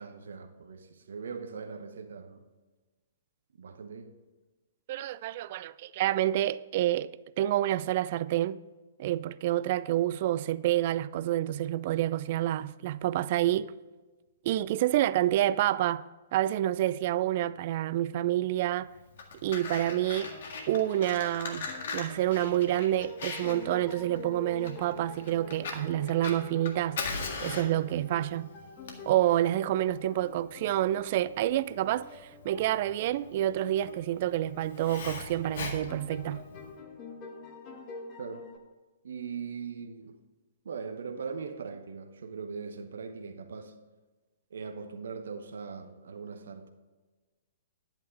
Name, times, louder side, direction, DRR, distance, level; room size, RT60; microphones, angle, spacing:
voice 1, 0.0-2.4 3.6-4.2 38.2-38.5 39.0-40.2 40.6-43.8 44.5-46.7, right 5 dB, 60° right, 0.9 m, -40 dB
voice 2, 4.9-7.1 7.4-8.6 9.0-13.7 14.4-16.0 16.3-18.9 19.4-20.3 20.7-21.7 21.9-27.0 27.4-28.5 29.1-32.1 32.4-36.4, right 13 dB, 45° right, 0.3 m, -28 dB
Fire, 19.0-36.7, left 4 dB, 55° left, 1.8 m, -40 dB
sound 1, 19.7-38.6, left 3 dB, 30° left, 1.6 m, -47 dB
11.0 x 8.9 x 4.0 m
figure-of-eight pair, 115°, 0 cm